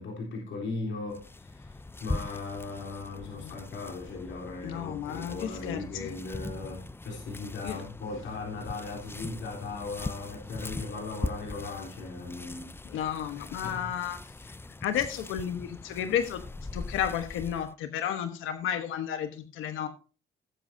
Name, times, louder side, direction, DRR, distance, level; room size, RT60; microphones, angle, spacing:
voice 1, 0.0-12.8 13.6-13.9, left 3 dB, 70° left, 3.8 m, -38 dB
sound 1, 1.1-17.7, left 2 dB, 10° left, 0.5 m, -41 dB
voice 2, 4.6-6.1 7.6-7.8 12.8-14.5 14.8-16.4 16.7-19.9, left 9 dB, 90° left, 1.2 m, -32 dB
18.0 x 7.5 x 2.7 m
cardioid pair, 90°, 20 cm